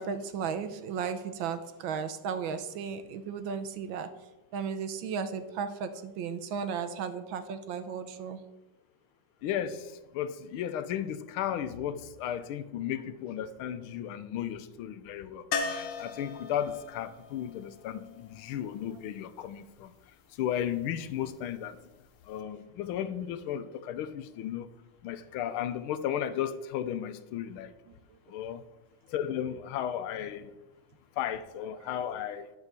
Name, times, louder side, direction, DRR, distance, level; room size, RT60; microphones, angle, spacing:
voice 1, 0.0-4.1 4.5-8.4 27.9-28.3, right 6 dB, 75° right, 1.5 m, -35 dB
voice 2, 9.4-19.9 20.3-21.9 22.2-24.7 25.0-27.7 28.3-28.6 29.1-30.5 31.2-32.5, left 10 dB, 85° left, 1.6 m, -34 dB
sound 1, 15.5-19.4 22.1-22.2 22.4-22.5, left 4 dB, 55° left, 0.9 m, -38 dB
10.5 x 4.8 x 6.7 m
omnidirectional pair, 2.3 m